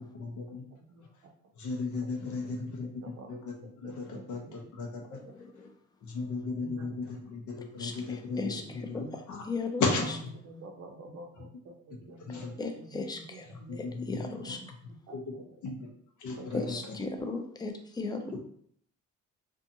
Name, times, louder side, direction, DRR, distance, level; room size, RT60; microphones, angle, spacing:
voice 1, 0.0-0.6 1.6-2.9 3.3-3.5 3.8-5.2 6.0-8.4 8.9-9.4 9.8-10.3 12.2-12.5 13.7-14.3 15.1-15.2 15.6-15.9 16.2-16.6, left 3 dB, 75° left, 1 dB, 0.7 m, -35 dB
voice 2, 0.7-1.3 2.2-3.3 3.8-4.6 6.6-7.2 8.5-9.2 10.1-10.2 10.4-14.6 14.9-15.6 16.4-16.6, right 2 dB, 50° right, 3 dB, 0.6 m, -50 dB
voice 3, 5.1-5.7 7.8-10.2 12.6-14.6 16.5-18.4, left 3 dB, 15° left, 5 dB, 0.4 m, -37 dB
2.6 x 2.3 x 2.6 m, 0.65 s
cardioid pair, 90°, 30 cm